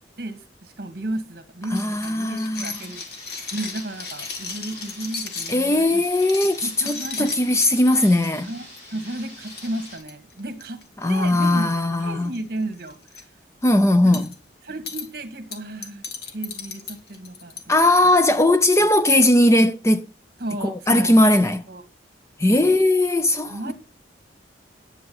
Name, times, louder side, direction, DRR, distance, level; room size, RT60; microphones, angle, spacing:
voice 1, 0.2-3.0 3.5-6.0 6.6-7.3 8.4-8.7 8.9-10.8 11.1-11.7 12.0-13.3 14.0-14.2 14.6-17.8 20.4-21.2 21.7-21.8 22.5-22.8 23.5-23.7, right 1 dB, 50° right, 1.8 m, -33 dB
sound 1, 1.7-5.6 6.1-7.7 8.2-8.5 8.8-8.9 9.2-9.3 9.5-10.8 11.6-12.0 12.2-12.4 12.8-13.2 14.1-14.3 14.9-15.1 15.5-17.7, left 5 dB, 55° left, 1.8 m, -35 dB
voice 2, 1.7-2.8 5.5-8.5 11.0-12.3 13.6-14.3 17.7-20.1 20.6-21.7 22.4-23.7, left 1 dB, 15° left, 0.5 m, -19 dB
sound 2, 2.7-10.0, left 1 dB, 30° left, 5.4 m, -44 dB
10.5 x 7.8 x 5.5 m
head